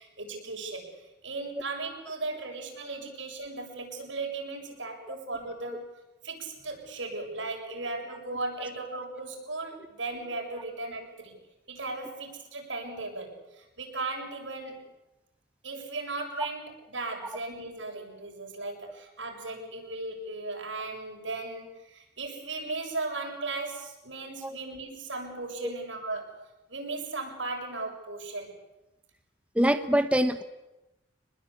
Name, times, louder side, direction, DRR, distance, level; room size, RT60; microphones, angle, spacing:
voice 1, 0.0-5.8 6.2-11.4 11.7-14.9 15.6-26.3 26.7-28.5, right 3 dB, 80° right, 1 dB, 7.4 m, -37 dB
voice 2, 29.5-30.4, equal, 5° right, 9 dB, 1.0 m, -24 dB
26.5 x 21.0 x 8.6 m, 0.98 s
head